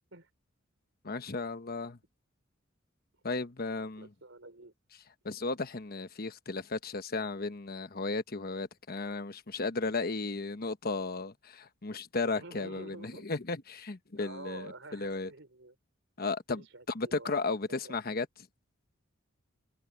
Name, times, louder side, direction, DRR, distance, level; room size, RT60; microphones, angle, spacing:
voice 1, 1.0-2.0 3.2-4.1 5.2-15.3 16.2-16.6 16.9-18.3, left 3 dB, 50° left, 1.2 m, -35 dB
voice 2, 4.0-4.7 12.3-13.3 14.1-15.8 16.5-17.4 17.7-18.0, right 2 dB, 70° right, 5.3 m, -49 dB
head